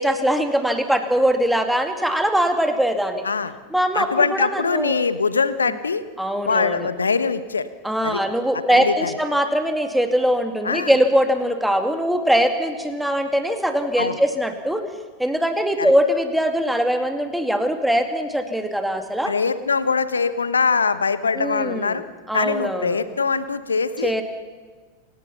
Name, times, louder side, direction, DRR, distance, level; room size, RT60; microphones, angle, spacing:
voice 1, 0.0-3.2 3.7-4.9 6.2-6.9 7.8-14.8 15.2-19.3 21.3-22.0 22.3-23.0 24.0-24.2, equal, ahead, 6 dB, 2.4 m, -21 dB
voice 2, 3.2-3.6 3.9-6.0 6.4-7.7 8.0-8.2 8.7-9.1 10.6-10.9 14.0-14.2 15.8-15.9 19.3-22.0 22.3-24.1, left 5 dB, 75° left, 14 dB, 1.2 m, -22 dB
28.0 x 17.5 x 5.8 m, 1.4 s
figure-of-eight pair, 90°, 0 cm